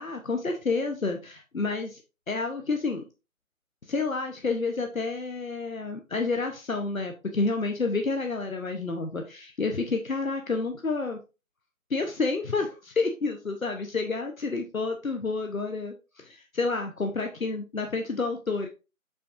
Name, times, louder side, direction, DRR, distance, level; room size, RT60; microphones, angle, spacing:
voice 1, 0.0-2.0 2.3-3.0 3.8-11.2 11.9-18.7, left 3 dB, 70° left, 4 dB, 1.0 m, -29 dB
7.3 x 6.1 x 2.5 m, 0.29 s
figure-of-eight pair, 165°, 42 cm